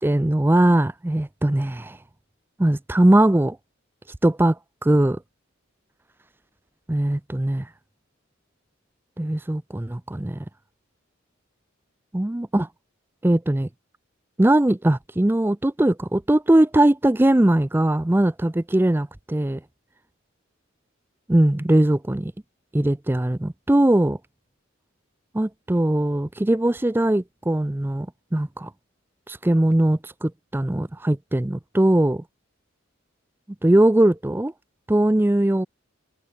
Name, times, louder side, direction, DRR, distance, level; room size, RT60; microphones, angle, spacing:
voice 1, 0.0-2.0 2.6-3.6 4.2-4.6 4.8-5.2 6.9-7.7 9.2-10.4 12.1-12.7 13.2-13.7 14.4-19.6 21.3-22.3 22.7-24.2 25.3-28.7 29.3-32.2 33.6-34.5 34.9-35.7, right 1 dB, 10° right, 0.4 m, -20 dB
head